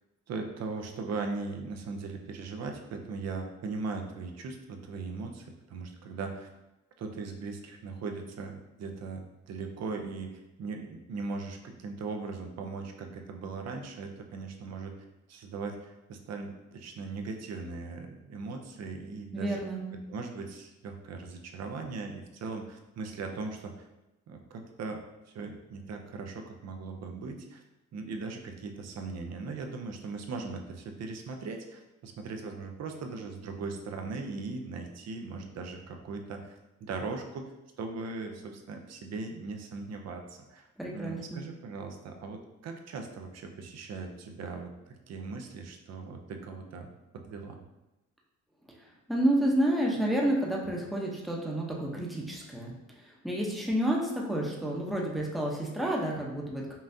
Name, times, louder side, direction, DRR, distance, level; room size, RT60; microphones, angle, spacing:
voice 1, 0.3-6.5 7.0-14.9 15.3-19.6 19.9-23.8 24.3-27.6 27.9-37.5 37.8-47.6, right 4 dB, 60° right, 4 dB, 0.6 m, -39 dB
voice 2, 19.3-19.8 40.8-41.4 49.1-52.8 53.2-56.6, right 1 dB, ahead, -2 dB, 0.8 m, -29 dB
5.5 x 2.4 x 2.7 m, 0.98 s
cardioid pair, 90°, 30 cm